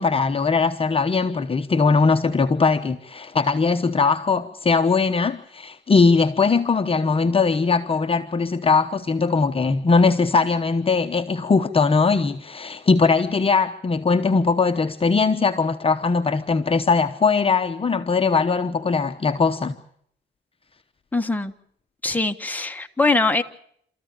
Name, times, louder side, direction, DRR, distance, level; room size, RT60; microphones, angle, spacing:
voice 1, 0.0-19.8, left 4 dB, 30° left, 1.0 m, -20 dB
voice 2, 21.1-21.5 22.0-23.4, left 3 dB, 10° left, 1.4 m, -22 dB
27.0 x 14.5 x 8.7 m
cardioid pair, 90°, 20 cm